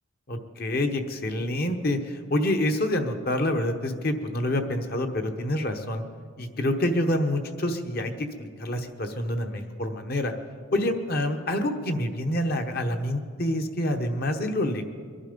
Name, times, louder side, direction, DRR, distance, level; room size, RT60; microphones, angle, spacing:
voice 1, 0.3-6.0 6.4-10.3 10.7-14.8, left 1 dB, 45° left, 5 dB, 1.1 m, -27 dB
22.5 x 11.5 x 5.2 m, 2.1 s
head